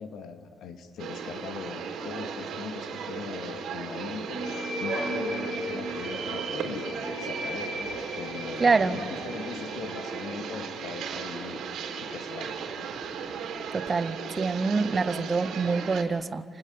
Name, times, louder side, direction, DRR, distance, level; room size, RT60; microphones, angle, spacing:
voice 1, 0.0-4.4 4.8-11.6 12.0-12.6, left 6 dB, 75° left, 6 dB, 2.3 m, -40 dB
sound 1, 1.0-16.0, right 6 dB, 75° right, 4.0 m, -36 dB
sound 2, 4.2-11.7, left 1 dB, 45° left, 7.0 m, -37 dB
voice 2, 8.6-9.0 13.7-16.4, right 4 dB, 25° right, 15 dB, 0.7 m, -25 dB
29.5 x 20.0 x 8.6 m, 2.2 s
cardioid pair, 175°, 0 cm